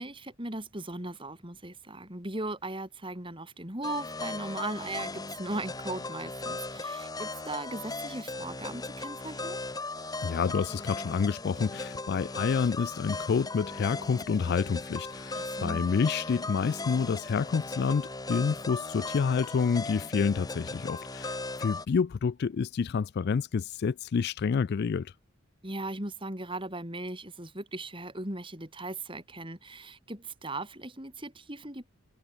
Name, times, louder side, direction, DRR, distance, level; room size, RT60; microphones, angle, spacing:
voice 1, 0.0-9.6 15.3-15.9 25.6-31.9, right 2 dB, 25° right, 4.8 m, -38 dB
sound 1, 3.8-21.8, left 3 dB, 15° left, 1.7 m, -38 dB
voice 2, 10.2-25.1, left 5 dB, 45° left, 0.3 m, -28 dB
head